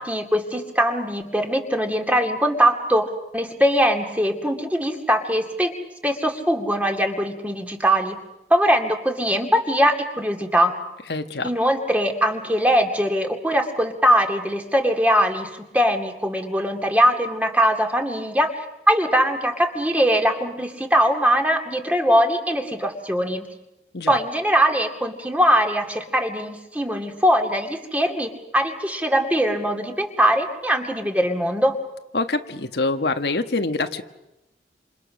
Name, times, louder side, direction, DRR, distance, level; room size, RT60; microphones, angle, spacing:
voice 1, 0.0-5.7 6.0-8.2 8.5-10.8 11.4-23.5 24.1-31.8, equal, 10° right, 4 dB, 2.3 m, -21 dB
voice 2, 11.1-11.5 23.9-24.2 32.1-34.0, left 3 dB, 75° left, 7 dB, 1.4 m, -25 dB
28.0 x 27.5 x 6.4 m, 0.95 s
head